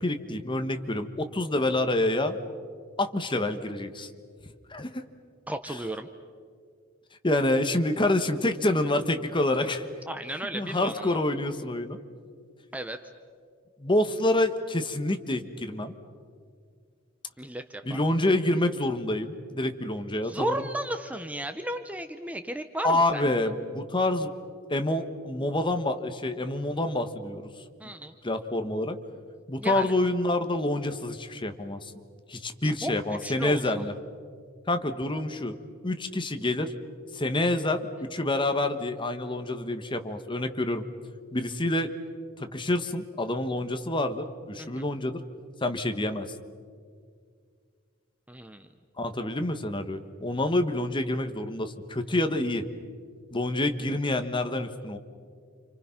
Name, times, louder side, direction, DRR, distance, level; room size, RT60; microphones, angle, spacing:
voice 1, 0.0-2.4 3.0-4.1 4.7-5.0 7.2-9.8 10.5-12.0 13.8-15.9 17.8-20.6 22.8-24.3 24.7-27.5 28.2-29.0 29.5-31.8 32.3-33.9 34.7-35.6 35.8-36.7 37.1-40.8 41.3-41.9 42.4-45.2 45.6-46.2 49.0-52.6 53.3-55.0, left 1 dB, 25° left, 8 dB, 1.3 m, -27 dB
voice 2, 5.5-6.1 10.1-11.2 12.7-13.0 17.4-18.0 20.2-23.3 27.8-28.1 29.6-29.9 32.6-32.9 33.2-33.6 44.6-44.8 48.3-48.7, right 1 dB, 5° right, 8 dB, 0.8 m, -34 dB
30.0 x 27.0 x 5.9 m, 2.1 s
head